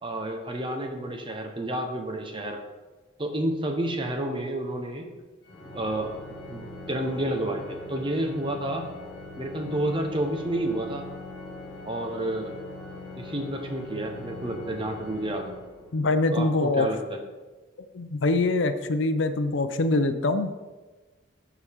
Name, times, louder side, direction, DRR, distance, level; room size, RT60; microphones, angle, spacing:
voice 1, 0.0-2.6 3.2-5.1 5.7-6.1 6.5-8.9 9.4-11.1 11.8-12.6 13.2-15.5 16.3-17.2, right 1 dB, 25° right, 4 dB, 0.9 m, -30 dB
Organ, 5.4-16.2, left 2 dB, 50° left, 2.0 m, -42 dB
voice 2, 15.9-16.9 17.9-20.6, left 2 dB, 70° left, 10 dB, 0.5 m, -24 dB
12.5 x 4.8 x 3.5 m, 1.2 s
head